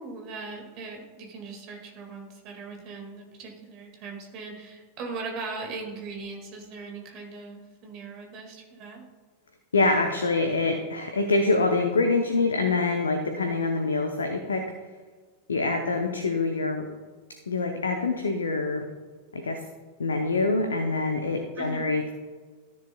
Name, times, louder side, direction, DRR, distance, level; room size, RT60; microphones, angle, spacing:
voice 1, 0.0-9.1 21.6-21.9, right 4 dB, 40° right, 2 dB, 1.9 m, -39 dB
voice 2, 9.7-14.7 15.5-16.9 17.5-18.8 19.3-19.6 20.0-22.1, left 3 dB, 70° left, 5 dB, 0.7 m, -25 dB
13.0 x 7.1 x 2.3 m, 1.4 s
figure-of-eight pair, 90°, 0 cm